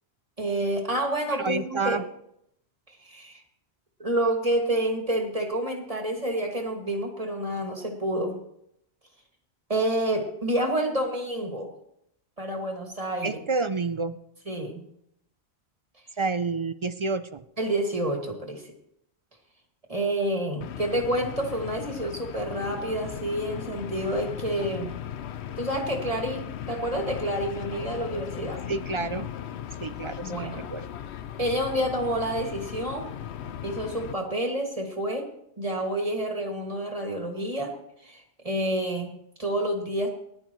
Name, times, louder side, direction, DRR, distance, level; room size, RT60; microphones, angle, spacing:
voice 1, 0.4-2.0 3.0-3.4 4.0-8.4 9.7-11.7 12.4-13.3 14.5-14.8 17.6-18.6 19.9-24.9 25.6-28.6 30.2-30.7 31.4-33.1 33.6-35.3 35.6-37.7 38.0-40.1, right 1 dB, 30° right, 2 dB, 2.2 m, -28 dB
voice 2, 1.3-2.0 13.2-14.2 16.2-17.4 28.7-29.3 29.8-30.9, right 4 dB, 55° right, 12 dB, 0.3 m, -29 dB
sound 1, 20.6-34.1, left 9 dB, 75° left, 0.9 m, -37 dB
19.5 x 11.5 x 3.1 m, 0.75 s
omnidirectional pair, 1.1 m